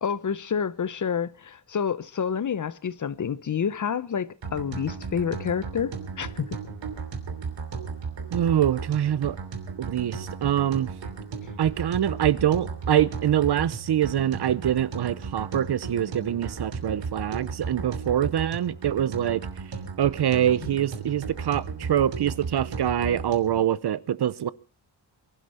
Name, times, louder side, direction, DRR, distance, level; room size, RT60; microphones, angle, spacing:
voice 1, 0.0-6.5 20.6-20.7, left 7 dB, 40° left, 0.7 m, -29 dB
sound 1, 4.4-23.6, right 5 dB, 75° right, 3.0 m, -35 dB
voice 2, 8.3-9.4 9.8-10.9 11.6-19.4 20.0-24.5, right 10 dB, 60° right, 0.8 m, -24 dB
24.0 x 12.0 x 4.2 m
wide cardioid pair, 130°, 45 cm